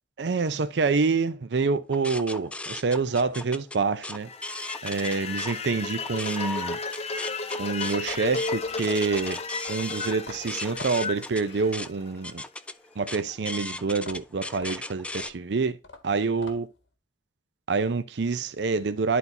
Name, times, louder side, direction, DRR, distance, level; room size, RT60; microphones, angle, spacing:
voice 1, 0.2-4.3 4.8-6.8 7.6-9.4 9.7-12.4 13.0-15.8 16.0-16.7 17.7-19.2, right 4 dB, 65° right, 0.5 m, -27 dB
sound 1, 1.9-5.6 5.9-15.3, left 2 dB, 5° left, 0.3 m, -37 dB
sound 2, 4.2-12.3, left 4 dB, 35° left, 0.7 m, -34 dB
sound 3, 8.1-12.3 13.9-16.9, left 3 dB, 80° left, 1.3 m, -47 dB
11.0 x 4.0 x 2.8 m
head